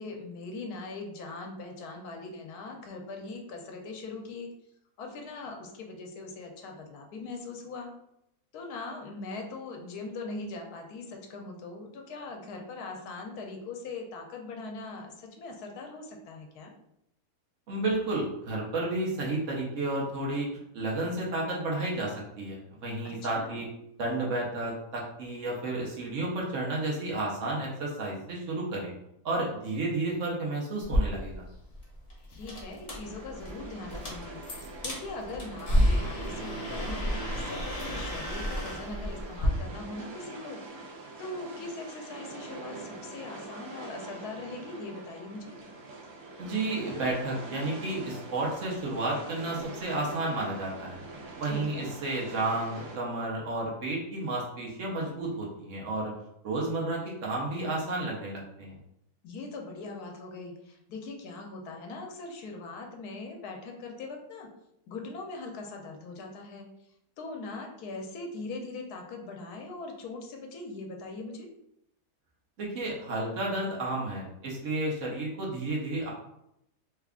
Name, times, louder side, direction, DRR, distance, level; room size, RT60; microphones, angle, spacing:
voice 1, 0.0-4.5 5.0-7.9 8.5-16.7 23.2-23.6 32.3-34.4 34.8-40.6 41.2-45.6 51.4-52.0 59.2-64.5 64.9-66.7 67.2-71.5, left 3 dB, 85° left, 2 dB, 1.2 m, -41 dB
voice 2, 17.7-20.5 20.7-23.7 24.0-28.9 29.2-31.4 46.4-51.0 51.4-56.1 56.4-58.7 72.6-76.1, right 2 dB, 60° right, -3 dB, 1.1 m, -32 dB
sound 1, 30.8-39.5, equal, 40° left, 0.5 m, -31 dB
sound 2, 33.0-53.0, right 3 dB, 90° right, 1.3 m, -43 dB
3.3 x 2.4 x 3.5 m, 0.80 s
omnidirectional pair, 1.6 m